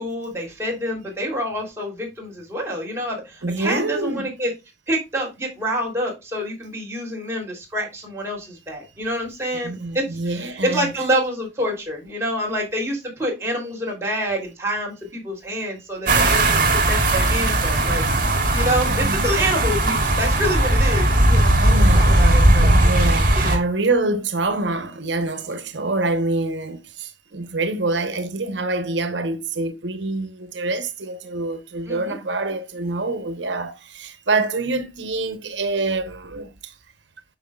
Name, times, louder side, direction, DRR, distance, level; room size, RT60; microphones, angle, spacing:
voice 1, 0.0-4.5 4.9-9.7 9.9-22.7 23.3-23.6 31.9-32.2, equal, 15° right, 3.3 m, -27 dB
voice 2, 3.4-4.3 9.6-10.9 18.9-19.2 21.5-36.7, right 2 dB, 90° right, 1.0 m, -26 dB
sound 1, 16.1-23.6, right 1 dB, 50° right, 2.1 m, -17 dB
9.0 x 6.2 x 2.4 m
head